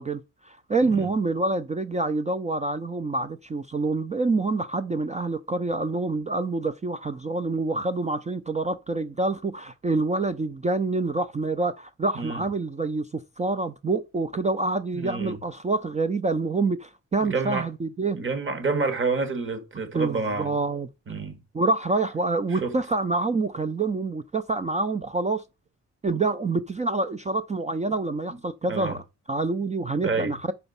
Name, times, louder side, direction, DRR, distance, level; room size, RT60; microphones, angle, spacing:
voice 1, 0.0-18.2 19.9-20.9 21.5-25.4 26.0-30.5, right 3 dB, 25° right, 0.4 m, -27 dB
voice 2, 14.9-15.4 17.2-17.7 18.1-20.6 21.1-21.4 22.5-22.7 28.7-29.0 30.0-30.3, right 4 dB, 40° right, 1.5 m, -28 dB
6.9 x 4.4 x 5.4 m
wide cardioid pair, 130°, 31 cm